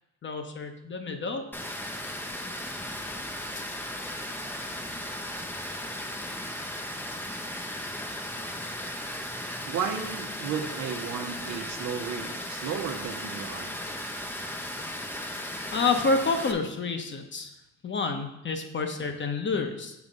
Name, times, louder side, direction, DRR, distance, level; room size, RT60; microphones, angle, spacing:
voice 1, 0.2-1.5 15.7-17.5 17.8-19.9, left 4 dB, 40° left, 5 dB, 1.0 m, -28 dB
Water, 1.5-16.5, left 1 dB, 5° left, 0.6 m, -36 dB
voice 2, 9.7-13.8, right 7 dB, 80° right, 5 dB, 0.9 m, -34 dB
7.1 x 3.6 x 5.3 m, 0.92 s
cardioid pair, 90°, 30 cm